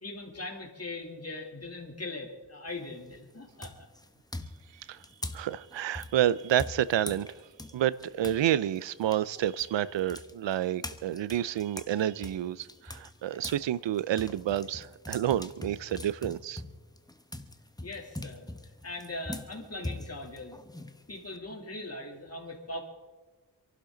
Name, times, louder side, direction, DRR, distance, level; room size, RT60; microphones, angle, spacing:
voice 1, 0.0-3.7 17.8-18.5 18.8-20.6 21.1-22.8, left 2 dB, 35° left, 3.1 m, -40 dB
sound 1, 2.7-3.1 3.6-8.4 8.8-13.6 14.0-21.4, left 1 dB, 10° left, 1.1 m, -42 dB
voice 2, 5.3-7.3 7.7-16.6, right 11 dB, 90° right, 0.6 m, -29 dB
27.0 x 11.5 x 3.9 m
cardioid pair, 55°, 42 cm